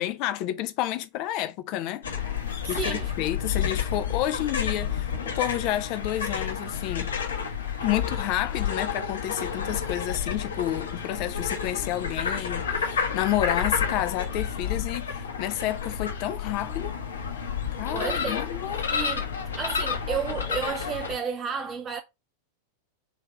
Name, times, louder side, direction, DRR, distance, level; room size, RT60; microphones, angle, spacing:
voice 1, 0.0-2.0 2.7-7.1 7.8-16.9 17.7-18.9, left 13 dB, 40° left, 0.5 m, -30 dB
sound 1, 2.0-21.2, left 7 dB, 70° left, 1.0 m, -30 dB
voice 2, 2.7-3.1 17.9-18.6 18.9-19.3 19.6-22.0, right 6 dB, 25° right, 0.4 m, -32 dB
3.4 x 3.4 x 4.6 m
figure-of-eight pair, 90°, 0 cm